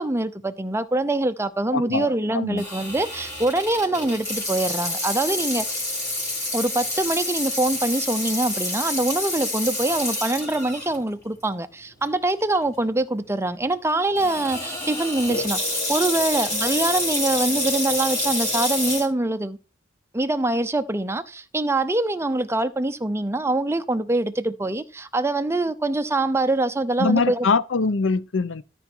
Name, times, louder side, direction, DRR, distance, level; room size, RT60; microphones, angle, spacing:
voice 1, 0.0-5.8 6.5-19.6 20.1-27.5, right 2 dB, 15° right, 0.6 m, -24 dB
voice 2, 1.7-2.1 2.3-2.6 27.0-28.6, left 4 dB, 85° left, 0.6 m, -23 dB
Water tap faucet / Sink (filling or washing), 2.6-11.0 11.4-11.5 12.3-12.6 14.1-19.0, left 1 dB, 20° left, 3.9 m, -28 dB
13.0 x 5.0 x 4.5 m
head